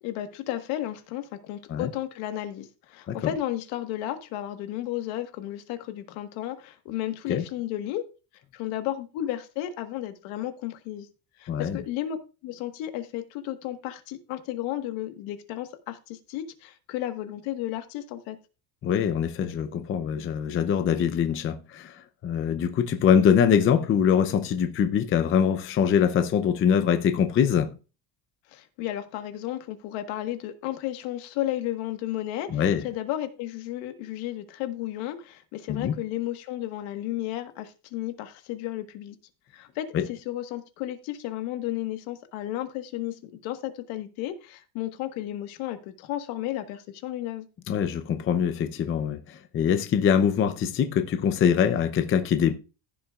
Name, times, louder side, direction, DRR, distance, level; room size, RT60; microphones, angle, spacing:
voice 1, 0.0-8.0 8.5-11.1 11.4-12.2 12.4-18.4 28.5-39.1 39.5-47.4, left 13 dB, 70° left, 1.6 m, -33 dB
voice 2, 11.5-11.8 18.8-27.7 32.5-32.8 35.7-36.0 39.9-40.1 47.7-52.5, left 8 dB, 25° left, 0.6 m, -23 dB
15.5 x 7.0 x 2.4 m
cardioid pair, 165°, 49 cm